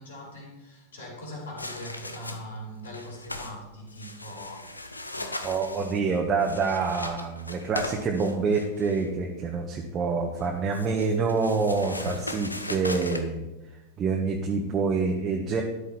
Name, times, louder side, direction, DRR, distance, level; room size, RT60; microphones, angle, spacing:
voice 1, 0.0-5.6 11.9-12.0, left 1 dB, 65° left, -1 dB, 4.8 m, -42 dB
sound 1, 1.6-2.6 2.8-3.5 3.9-9.1 10.4-13.2, left 2 dB, 85° left, 1.1 m, -38 dB
voice 2, 5.4-13.5 14.0-15.6, right 4 dB, 25° right, 1 dB, 1.5 m, -26 dB
13.0 x 10.0 x 4.3 m, 0.99 s
figure-of-eight pair, 90°, 0 cm